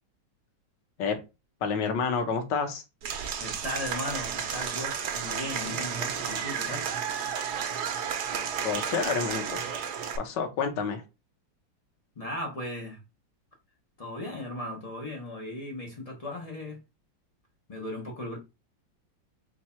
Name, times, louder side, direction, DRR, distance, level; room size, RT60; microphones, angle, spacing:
voice 1, 1.6-2.8 8.6-9.7 10.2-11.0, left 5 dB, 65° left, 1.5 m, -29 dB
Applause / Crowd, 3.0-10.2, right 7 dB, 65° right, 1.1 m, -32 dB
voice 2, 3.4-6.9 12.2-13.0 14.0-16.8 17.7-18.4, left 1 dB, 40° left, 0.5 m, -37 dB
4.6 x 2.3 x 4.2 m
omnidirectional pair, 2.1 m